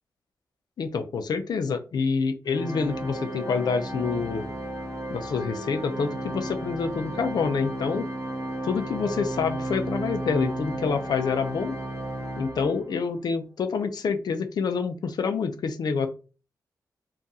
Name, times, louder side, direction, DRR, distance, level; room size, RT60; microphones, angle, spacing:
voice 1, 0.8-4.5 5.1-8.1 8.6-11.8 12.4-16.1, left 5 dB, 70° left, 8 dB, 0.6 m, -27 dB
Organ, 2.5-13.1, right 1 dB, 40° right, 1.4 m, -34 dB
3.7 x 2.5 x 4.1 m, 0.34 s
wide cardioid pair, 145°, 7 cm